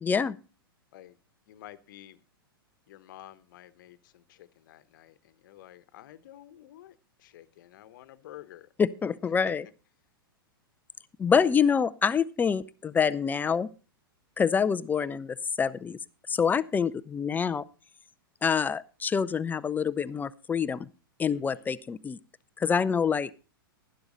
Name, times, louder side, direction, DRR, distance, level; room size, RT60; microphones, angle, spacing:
voice 1, 0.0-0.4 8.8-9.6 11.2-13.7 14.4-16.0 16.3-17.6 18.4-20.9 21.2-22.2 22.6-23.3, left 6 dB, 15° left, 16 dB, 0.5 m, -26 dB
voice 2, 1.5-2.2 2.9-8.7 9.4-9.5 21.3-21.7, left 13 dB, 60° left, 15 dB, 1.1 m, -50 dB
12.0 x 11.5 x 3.8 m, 0.34 s
hypercardioid pair, 105°, 12 cm